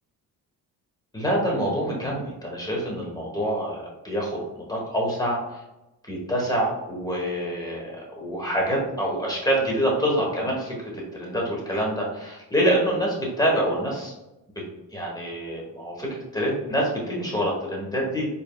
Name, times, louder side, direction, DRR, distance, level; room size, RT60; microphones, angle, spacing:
voice 1, 1.1-5.6 6.0-14.1 14.9-18.3, equal, 10° left, -2 dB, 1.3 m, -26 dB
4.6 x 3.5 x 2.4 m, 0.95 s
cardioid pair, 115°, 36 cm